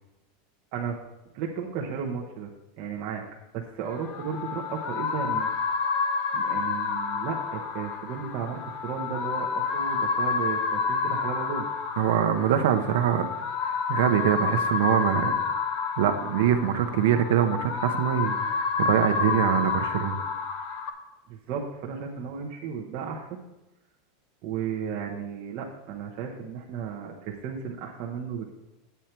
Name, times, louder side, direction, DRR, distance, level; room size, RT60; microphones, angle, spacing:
voice 1, 1.3-2.5 2.8-3.2 3.5-5.5 6.3-11.7 21.3-23.4 24.4-28.5, right 7 dB, 35° right, -2 dB, 0.9 m, -34 dB
sound 1, 3.9-20.9, left 5 dB, 40° left, 0.8 m, -29 dB
voice 2, 12.0-13.3 13.6-15.4 16.0-20.2, right 9 dB, 70° right, 7 dB, 0.9 m, -24 dB
9.0 x 8.2 x 4.5 m, 0.96 s
supercardioid pair, 175°, 0 cm